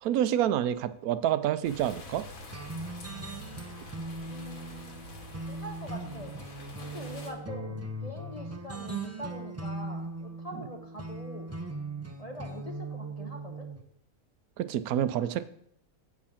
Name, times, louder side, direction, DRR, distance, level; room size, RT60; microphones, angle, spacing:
voice 1, 0.0-2.3 10.5-10.6 14.6-15.4, right 11 dB, 80° right, 13 dB, 1.1 m, -28 dB
sound 1, 1.6-7.3, left 1 dB, 70° left, 1.9 m, -46 dB
sound 2, 2.5-13.8, right 2 dB, 20° right, 0.3 m, -39 dB
voice 2, 4.3-5.1 5.5-6.3 6.9-11.5 12.2-13.7, equal, 30° left, 0 dB, 0.9 m, -43 dB
8.0 x 4.9 x 7.1 m, 0.69 s
omnidirectional pair, 1.5 m